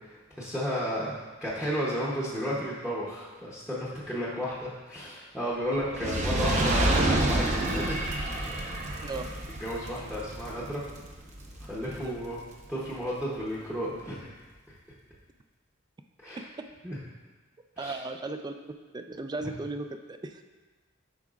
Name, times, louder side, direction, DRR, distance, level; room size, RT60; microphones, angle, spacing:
voice 1, 0.4-8.0 9.6-10.8 11.7-12.4 12.7-14.3 16.2-16.4 16.8-17.0 17.8-17.9, equal, 5° right, -7 dB, 0.8 m, -33 dB
Fire, 5.8-12.3 12.9-13.0, right 1 dB, 35° right, 0.7 m, -28 dB
voice 2, 9.0-9.3 12.0-12.2 16.4-16.7 17.8-18.5 18.9-20.4, right 3 dB, 20° right, 7 dB, 0.3 m, -36 dB
8.8 x 5.8 x 2.4 m, 1.3 s
head